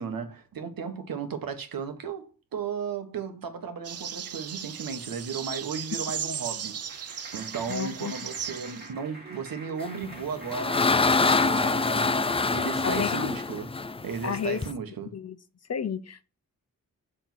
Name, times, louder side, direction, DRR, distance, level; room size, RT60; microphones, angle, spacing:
voice 1, 0.0-6.8 7.3-13.7 14.0-15.2, right 6 dB, 80° right, 1.5 m, -35 dB
sound 1, 3.8-8.9, right 8 dB, 45° right, 0.6 m, -36 dB
Clapping, 6.3-13.3, right 1 dB, 30° right, 2.3 m, -47 dB
voice 2, 7.7-8.1 12.8-13.3 14.2-14.6 15.1-15.4 15.7-16.3, left 7 dB, 50° left, 0.7 m, -31 dB
sound 2, 10.0-14.7, left 3 dB, 15° left, 0.4 m, -25 dB
7.2 x 3.8 x 5.9 m
wide cardioid pair, 110°, 34 cm